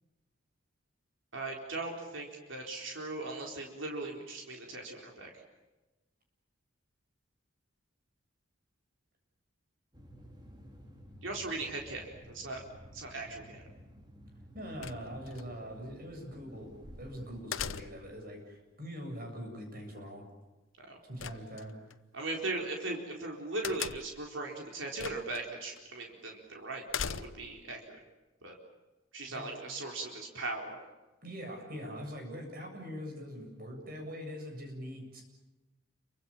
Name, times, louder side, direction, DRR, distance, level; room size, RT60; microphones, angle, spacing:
voice 1, 1.3-5.3 11.2-12.6 12.9-13.6 20.9-21.0 22.1-27.8 28.4-28.5 29.1-30.8, right 2 dB, 75° right, 1 dB, 4.1 m, -38 dB
sound 1, 9.9-17.7, equal, 20° right, 3.7 m, -53 dB
voice 2, 14.5-16.7 17.0-20.2 21.1-21.7 29.3-29.5 31.2-35.2, equal, 45° right, 3 dB, 7.7 m, -43 dB
sound 2, 14.8-15.4 17.5-18.2 21.2-21.9 23.6-24.3 25.0-25.4 25.8-25.9 26.9-27.6, left 7 dB, 85° left, 0.9 m, -38 dB
29.5 x 24.5 x 7.3 m, 1.1 s
head